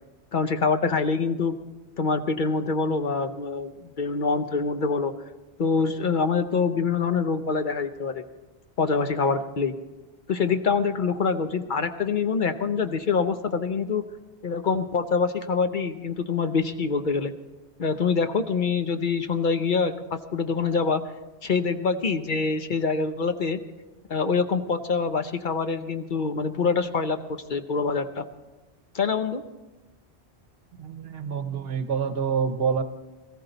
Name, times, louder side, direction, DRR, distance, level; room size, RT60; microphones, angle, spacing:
voice 1, 0.3-1.6 2.0-5.1 5.6-8.2 8.8-9.8 10.3-14.0 14.4-17.3 17.8-21.0 21.4-23.6 24.1-28.2 28.9-29.4, left 5 dB, 50° left, 8 dB, 0.8 m, -25 dB
voice 2, 30.8-32.8, right 6 dB, 65° right, 10 dB, 1.0 m, -27 dB
18.5 x 14.5 x 3.9 m, 1.1 s
omnidirectional pair, 1.1 m